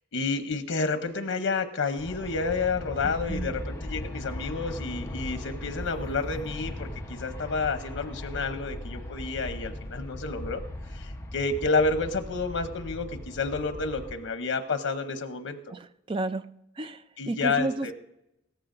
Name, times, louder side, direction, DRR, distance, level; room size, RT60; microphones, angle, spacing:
voice 1, 0.1-10.6 10.9-15.6 17.2-17.9, left 4 dB, 90° left, 8 dB, 0.8 m, -30 dB
Aircraft, 2.0-14.2, left 1 dB, 15° left, 0.9 m, -38 dB
voice 2, 15.7-16.5 16.8-17.9, right 2 dB, 25° right, 11 dB, 0.4 m, -32 dB
16.5 x 14.0 x 2.6 m, 0.84 s
head